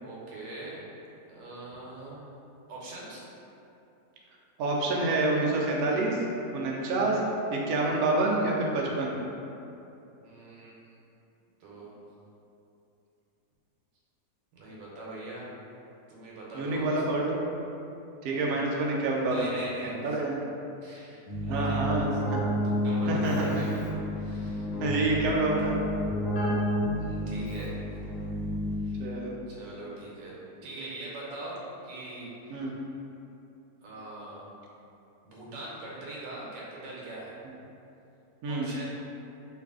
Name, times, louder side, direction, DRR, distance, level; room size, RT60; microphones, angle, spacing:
voice 1, 0.0-0.8 1.3-2.3 2.7-3.2 10.2-10.7 11.6-11.9 14.5-15.5 16.1-17.1 18.3-18.7 19.3-20.2 20.8-22.2 22.6-23.9 24.2-24.7 25.0-25.2 26.8-27.7 28.8-29.0 29.5-30.4 30.6-32.7 33.8-34.5 35.2-37.4 38.5-38.9, right 2 dB, 85° right, -5 dB, 1.4 m, -42 dB
voice 2, 4.6-6.2 6.5-7.2 7.5-9.2 16.5-17.4 18.2-19.5 19.8-20.4 21.5-22.4 23.0-23.6 24.8-25.8 29.0-29.4 32.5-32.7 38.4-38.7, right 2 dB, 70° right, -2 dB, 0.9 m, -27 dB
Keyboard (musical), 21.3-29.1, equal, 60° left, 1.1 m, -30 dB
3.2 x 2.4 x 3.5 m, 2.8 s
omnidirectional pair, 1.9 m